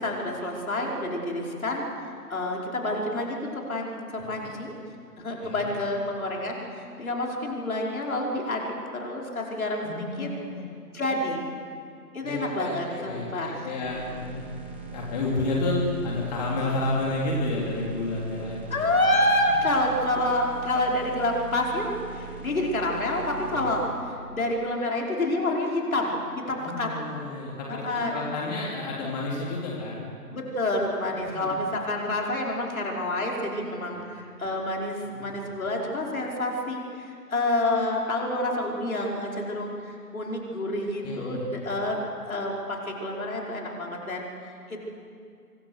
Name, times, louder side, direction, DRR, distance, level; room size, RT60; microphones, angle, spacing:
voice 1, 0.0-3.4 3.7-4.7 5.2-10.3 10.9-11.4 12.1-13.7 18.7-23.8 24.1-26.2 26.5-26.9 27.7-28.2 30.3-44.3 44.7-44.8, left 1 dB, 60° left, -1 dB, 5.3 m, -28 dB
voice 2, 9.8-10.7 12.2-13.3 13.6-14.4 14.9-18.9 23.5-23.7 26.6-30.0 31.1-31.6 33.9-34.0 35.0-35.3 41.0-41.4, left 2 dB, 25° left, -3 dB, 3.5 m, -30 dB
sound 1, 13.8-23.9, right 5 dB, 10° right, 0.7 m, -41 dB
25.5 x 23.0 x 6.6 m, 2.4 s
figure-of-eight pair, 150°, 46 cm